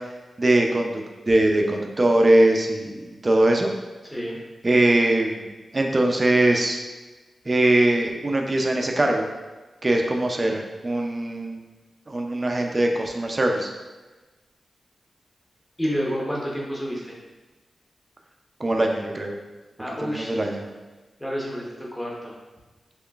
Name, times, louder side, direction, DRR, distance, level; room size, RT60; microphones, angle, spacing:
voice 1, 0.4-3.7 4.6-5.5 5.7-6.8 7.5-9.3 9.8-11.6 12.1-13.7 18.6-19.3 20.0-20.7, right 1 dB, 25° right, 2 dB, 0.4 m, -21 dB
voice 2, 4.0-4.4 15.8-17.1 19.8-20.3 21.2-22.3, equal, 10° left, -4 dB, 0.7 m, -29 dB
3.7 x 3.1 x 2.3 m, 1.2 s
wide cardioid pair, 145°, 0 cm